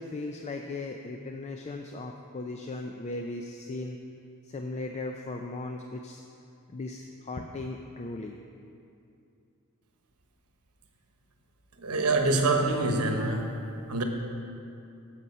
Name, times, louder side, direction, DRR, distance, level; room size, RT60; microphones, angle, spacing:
voice 1, 0.0-4.0 4.5-6.2 6.7-8.4, left 2 dB, 30° left, 4 dB, 0.4 m, -37 dB
voice 2, 11.8-13.5 13.9-14.0, right 2 dB, 80° right, 3 dB, 1.1 m, -25 dB
9.8 x 7.5 x 5.5 m, 2.6 s
head